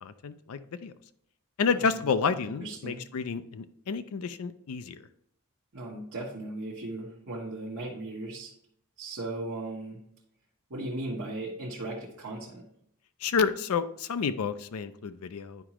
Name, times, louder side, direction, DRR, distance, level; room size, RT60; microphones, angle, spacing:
voice 1, 0.0-0.9 1.6-5.0 13.2-15.6, left 5 dB, 75° left, 11 dB, 0.4 m, -30 dB
voice 2, 1.7-2.0 2.2-2.3 2.6-3.1 5.7-8.5 9.0-10.0 10.7-12.7, right 2 dB, 65° right, -4 dB, 1.0 m, -37 dB
10.0 x 4.8 x 3.0 m, 0.71 s
head